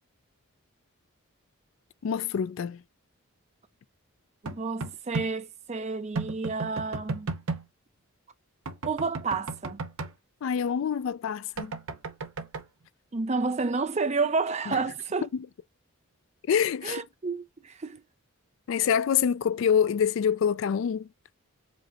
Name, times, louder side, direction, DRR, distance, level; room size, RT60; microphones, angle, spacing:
voice 1, 2.0-2.8 10.4-11.8 14.7-14.8 15.2-15.5 16.5-17.0 18.7-21.1, left 7 dB, 60° left, 0.3 m, -26 dB
voice 2, 4.4-7.3 8.8-9.8 13.1-15.3 16.8-18.0, right 4 dB, 30° right, 0.5 m, -30 dB
sound 1, 4.5-5.3 6.1-7.6 8.7-10.1 11.6-12.6, right 3 dB, 75° right, 0.8 m, -34 dB
5.1 x 2.1 x 3.9 m
head